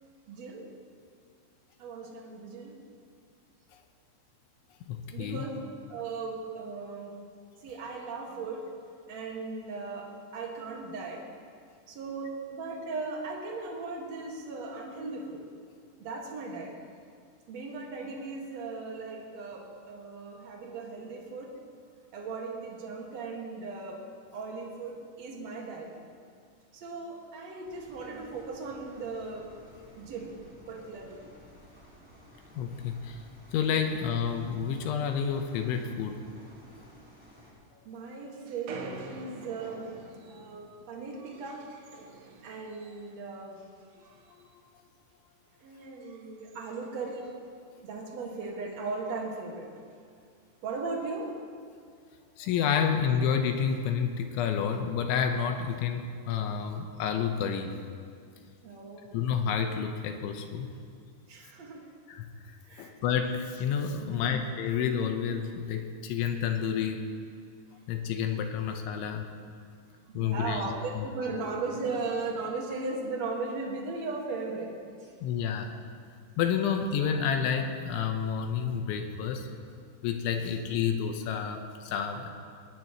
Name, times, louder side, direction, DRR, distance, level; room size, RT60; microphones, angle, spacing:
voice 1, 0.3-0.7 1.8-2.8 5.1-7.2 7.6-8.8 9.1-11.3 11.9-15.5 16.0-16.8 17.5-21.6 22.1-24.1 24.3-26.1 26.7-29.5 29.9-30.3 30.7-31.2 37.8-39.9 40.2-41.7 42.3-43.7 45.6-47.3 47.8-49.7 50.6-51.4 58.6-59.3 61.3-61.9 62.6-63.0 63.9-64.3 67.7-67.8 70.1-75.1 80.4-80.6, right 3 dB, 50° right, -1 dB, 2.1 m, -37 dB
voice 2, 4.9-5.5 32.6-33.2 33.5-36.2 52.4-57.7 59.1-60.7 62.1-62.3 62.8-67.1 67.9-69.3 70.1-71.1 75.2-75.7 76.4-79.5 80.0-82.3, left 7 dB, 80° left, 5 dB, 3.3 m, -29 dB
sound 1, 27.6-37.5, equal, 5° right, 3.0 m, -54 dB
sound 2, 38.5-43.3 43.6-44.5 44.9-45.1 45.7-47.6 47.9-48.0 48.3-48.4 48.7-49.1 49.9-50.0 50.9-51.2, right 3 dB, 80° right, 1.9 m, -48 dB
20.5 x 18.5 x 3.1 m, 2.2 s
omnidirectional pair, 5.6 m